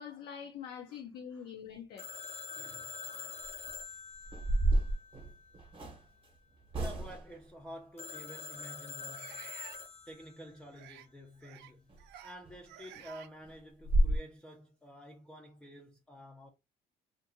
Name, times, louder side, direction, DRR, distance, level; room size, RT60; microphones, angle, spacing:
voice 1, 0.0-2.1, left 8 dB, 65° left, 0.5 m, -44 dB
voice 2, 0.9-1.5 2.5-3.4 6.8-9.5 10.1-11.9 12.2-16.5, equal, 5° left, 0.4 m, -50 dB
Telephone, 2.0-5.6 8.0-10.5, left 5 dB, 40° left, 0.8 m, -45 dB
sound 1, 3.4-3.7 4.2-6.0 6.7-7.4 11.9-12.0 12.4-12.6 13.0-13.1 13.4-13.5 13.8-14.2, right 1 dB, 30° right, 0.9 m, -30 dB
sound 2, 4.3-4.4 5.2-5.3 6.9-7.0 9.1-9.8 10.7-11.1 11.4-11.7 12.0-12.4 12.6-13.3, right 11 dB, 85° right, 0.4 m, -52 dB
2.5 x 2.5 x 2.5 m
cardioid pair, 110°, 17 cm